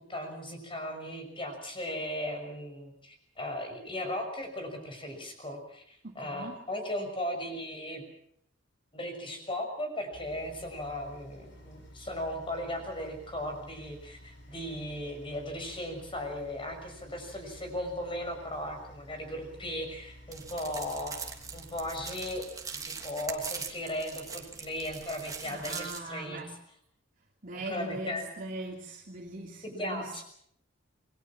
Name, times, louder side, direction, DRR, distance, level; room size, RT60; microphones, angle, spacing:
voice 1, 0.1-8.0 8.9-22.5 22.8-26.4 27.5-28.2 29.6-30.2, left 1 dB, 25° left, 5 dB, 6.3 m, -37 dB
voice 2, 6.0-6.6 25.4-26.5 27.4-30.2, right 2 dB, 45° right, -1 dB, 2.9 m, -40 dB
sound 1, 10.1-22.5, equal, 60° left, 6.7 m, -52 dB
sound 2, 20.3-26.0, right 5 dB, 20° right, 2.9 m, -41 dB
28.0 x 21.5 x 6.1 m, 0.67 s
head